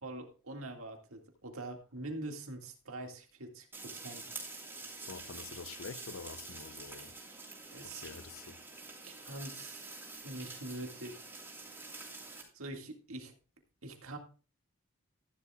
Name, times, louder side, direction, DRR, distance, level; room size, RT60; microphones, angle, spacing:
voice 1, 0.0-3.7 3.9-4.2 7.7-8.1 9.0-9.9 10.2-11.3 12.5-13.3 13.8-14.2, right 2 dB, 80° right, 2.0 m, -44 dB
sound 1, 3.7-12.4, right 3 dB, 10° right, 3.1 m, -47 dB
voice 2, 5.1-7.1 7.8-8.6, left 5 dB, 70° left, 0.6 m, -47 dB
14.0 x 11.0 x 2.3 m
head